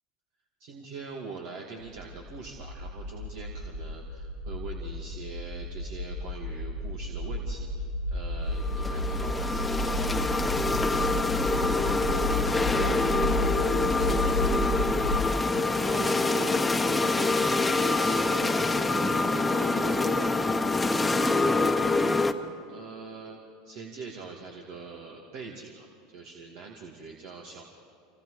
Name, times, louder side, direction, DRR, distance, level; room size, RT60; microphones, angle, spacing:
voice 1, 0.6-10.3 16.8-20.3 22.7-23.4 23.6-27.6, right 4 dB, 65° right, 0 dB, 2.5 m, -43 dB
sound 1, 1.8-15.3, left 1 dB, 90° right, 4.0 m, -32 dB
sound 2, 8.6-22.3, left 3 dB, 10° left, 1.3 m, -26 dB
voice 2, 11.4-15.0 15.7-16.6 21.6-22.0, right 4 dB, 45° right, -2 dB, 7.0 m, -41 dB
28.0 x 27.0 x 5.1 m, 2.6 s
hypercardioid pair, 90°, 0 cm